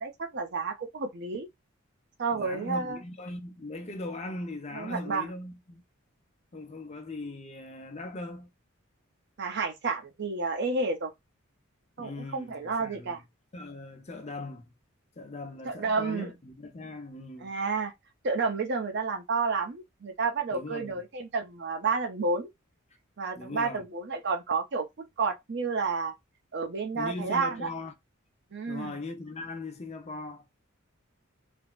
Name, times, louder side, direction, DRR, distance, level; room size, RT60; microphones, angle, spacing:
voice 1, 0.0-1.5 2.2-3.0 4.7-5.3 9.4-11.1 12.0-13.2 15.7-16.3 17.4-17.9 18.2-22.5 23.2-24.9 25.2-26.1 26.5-27.7 28.5-29.0, right 4 dB, 55° right, 0.6 m, -30 dB
voice 2, 2.3-5.8 6.5-8.5 12.0-13.2 13.5-14.7 15.2-17.5 20.5-21.0 23.3-23.8 26.9-27.9 28.7-30.4, left 2 dB, 30° left, 0.6 m, -39 dB
3.3 x 2.0 x 2.4 m
head